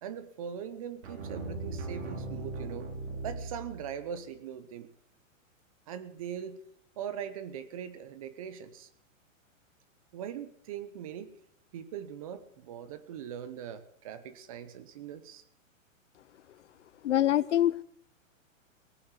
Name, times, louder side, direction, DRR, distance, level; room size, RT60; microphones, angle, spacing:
voice 1, 0.0-2.9 3.2-4.9 5.9-6.6 7.0-8.9 10.1-11.3 11.7-15.4, right 8 dB, 25° right, 0.8 m, -41 dB
sound 1, 1.0-4.2, right 2 dB, 55° right, 4.0 m, -39 dB
voice 2, 17.0-17.8, left 12 dB, 60° left, 0.6 m, -25 dB
18.0 x 8.6 x 8.2 m
hypercardioid pair, 175°, 40 cm